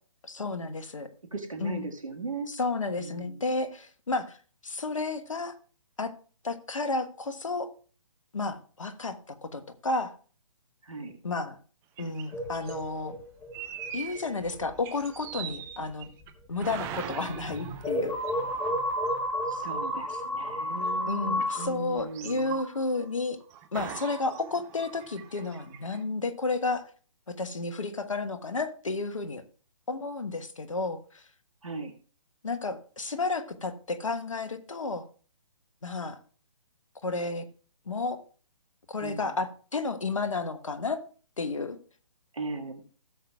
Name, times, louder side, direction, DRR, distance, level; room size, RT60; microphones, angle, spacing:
voice 1, 0.2-1.1 1.6-1.9 2.5-4.4 4.6-5.6 6.0-6.1 6.4-7.7 8.3-10.2 11.2-11.6 12.0-13.2 13.9-16.1 16.5-18.1 21.1-23.4 23.7-26.8 27.3-29.4 29.9-31.2 32.4-35.1 35.8-36.2 37.0-37.4 37.9-38.2 38.9-41.0 41.4-41.8, left 3 dB, 70° left, 9 dB, 1.3 m, -32 dB
voice 2, 1.3-2.5 3.0-3.4 10.8-11.1 19.5-22.6 31.6-31.9 39.0-39.3 42.3-42.8, right 3 dB, 70° right, 4 dB, 1.7 m, -38 dB
sound 1, 12.0-12.8 13.5-14.5 14.8-16.3 16.6-21.1 21.4-23.2 23.5-26.0, right 9 dB, 15° right, 0.8 m, -41 dB
sound 2, 12.3-14.7 15.3-15.4 17.1-17.2 17.4-21.7, left 1 dB, 10° left, 0.9 m, -31 dB
16.0 x 7.6 x 2.3 m, 0.41 s
figure-of-eight pair, 135°, 17 cm